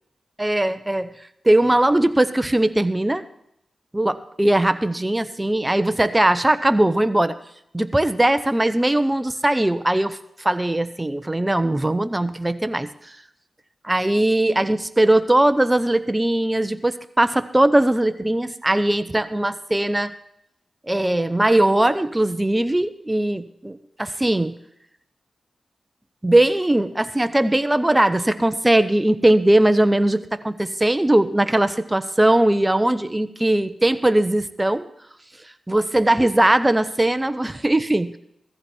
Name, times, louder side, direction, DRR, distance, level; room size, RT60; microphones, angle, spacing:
voice 1, 0.4-1.1 1.4-3.2 3.9-7.4 7.7-12.9 13.8-20.1 20.9-24.5 26.2-34.9 35.7-38.2, right 1 dB, 20° right, 11 dB, 1.1 m, -20 dB
17.0 x 14.5 x 4.6 m, 0.77 s
cardioid pair, 45°, 0 cm